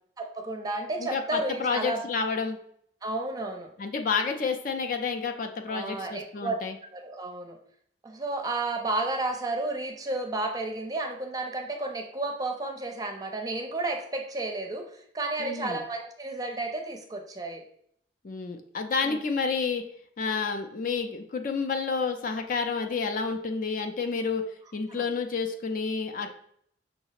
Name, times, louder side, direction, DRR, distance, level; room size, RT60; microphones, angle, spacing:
voice 1, 0.2-2.0 3.0-3.7 5.7-6.6 6.9-7.6 8.0-17.6 19.0-19.2 24.9-25.0, right 2 dB, 20° right, 3 dB, 0.5 m, -32 dB
voice 2, 1.0-2.6 3.8-6.8 15.4-15.8 18.2-19.8 20.2-24.4 24.7-26.3, left 5 dB, 50° left, 6 dB, 0.4 m, -30 dB
5.7 x 2.0 x 4.0 m, 0.66 s
head